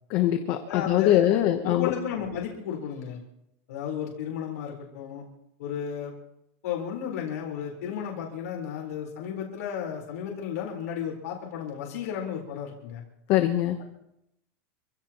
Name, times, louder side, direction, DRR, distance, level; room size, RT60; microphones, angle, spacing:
voice 1, 0.1-1.9 13.3-13.8, left 13 dB, 40° left, 7 dB, 0.9 m, -22 dB
voice 2, 0.6-1.3 1.6-3.2 3.7-5.2 5.6-6.1 6.6-13.0, left 8 dB, 80° left, -1 dB, 4.1 m, -33 dB
27.0 x 16.0 x 3.0 m, 0.82 s
supercardioid pair, 170°, 8 cm